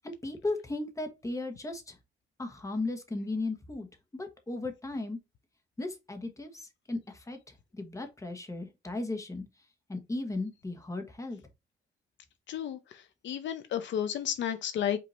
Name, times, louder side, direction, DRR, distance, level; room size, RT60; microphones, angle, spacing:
voice 1, 0.0-1.9 2.4-3.9 4.1-5.2 5.8-6.5 6.9-7.4 7.7-9.4 9.9-11.4, left 2 dB, 15° left, 1.2 m, -36 dB
voice 2, 12.5-12.8 13.2-15.0, left 9 dB, 70° left, 0.6 m, -32 dB
5.2 x 2.8 x 3.1 m
cardioid pair, 90°, 20 cm